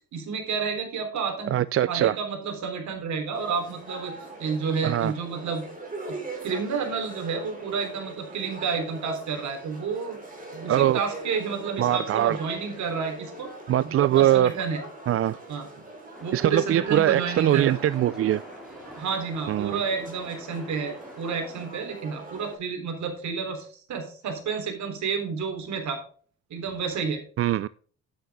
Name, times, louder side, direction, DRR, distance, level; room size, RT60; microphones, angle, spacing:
voice 1, 0.1-1.5 1.9-4.1 4.4-5.6 6.4-10.2 10.5-13.5 13.8-14.8 15.5-15.7 16.2-17.8 18.9-26.0 26.5-27.2, right 5 dB, 70° right, 4 dB, 3.5 m, -30 dB
voice 2, 1.5-2.2 4.8-5.1 10.7-11.0 11.8-12.4 13.7-14.5 15.1-15.4 16.3-18.4 19.5-19.8 27.4-27.7, right 12 dB, 50° right, 17 dB, 0.4 m, -22 dB
sound 1, 3.3-22.6, right 2 dB, 25° right, 4.5 m, -42 dB
sound 2, 16.1-21.7, equal, ahead, 2.7 m, -46 dB
9.4 x 9.0 x 3.6 m, 0.44 s
cardioid pair, 90°, 30 cm